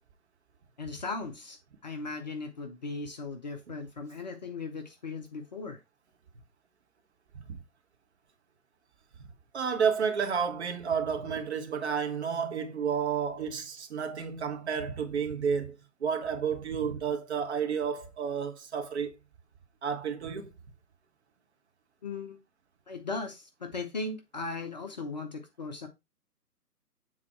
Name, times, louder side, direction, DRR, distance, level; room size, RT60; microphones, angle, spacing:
voice 1, 0.8-1.6 1.8-5.8 22.0-22.4 22.9-25.9, left 3 dB, 25° left, 0.7 m, -37 dB
voice 2, 9.5-19.1 19.8-20.5, right 6 dB, 40° right, 1.4 m, -31 dB
7.4 x 4.0 x 4.4 m
figure-of-eight pair, 140°, 48 cm